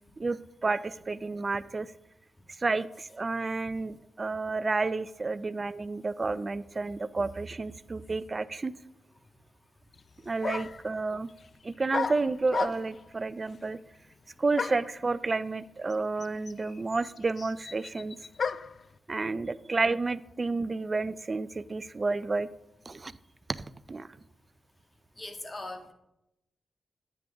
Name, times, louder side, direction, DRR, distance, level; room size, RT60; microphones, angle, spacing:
voice 1, 0.2-1.9 2.6-8.7 10.2-11.3 11.6-13.8 14.4-18.2 19.1-22.5 22.9-23.1 23.9-24.1, right 3 dB, 40° right, 16 dB, 0.5 m, -30 dB
sound 1, 9.9-10.0 10.4-10.9 11.9-13.1 14.6-15.0 15.9-16.0 16.2-18.8, left 5 dB, 55° left, 0.3 m, -34 dB
voice 2, 25.2-25.9, left 2 dB, 30° left, 5 dB, 1.7 m, -40 dB
10.0 x 9.2 x 3.5 m, 0.86 s
cardioid pair, 55°, 0 cm